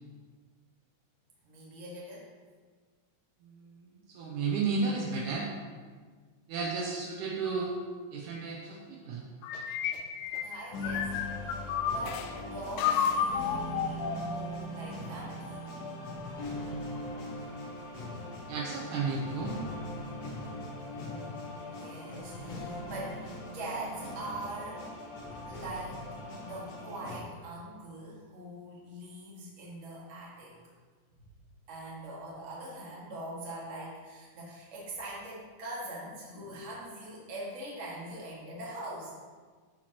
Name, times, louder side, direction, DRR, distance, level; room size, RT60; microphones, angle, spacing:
voice 1, 1.4-2.3 10.4-11.1 11.4-15.6 21.8-24.8 25.4-26.0 26.4-30.5 31.7-39.1, right 1 dB, 30° right, -6 dB, 1.3 m, -42 dB
voice 2, 3.5-5.5 6.5-7.7 8.1-9.2 18.5-19.6, right 4 dB, 80° right, -1 dB, 2.0 m, -33 dB
sound 1, 9.4-12.3 12.8-14.6, left 7 dB, 80° left, 2.1 m, -31 dB
sound 2, 10.7-27.2, left 1 dB, 65° left, 1.9 m, -40 dB
13.0 x 4.5 x 2.9 m, 1.5 s
omnidirectional pair, 4.0 m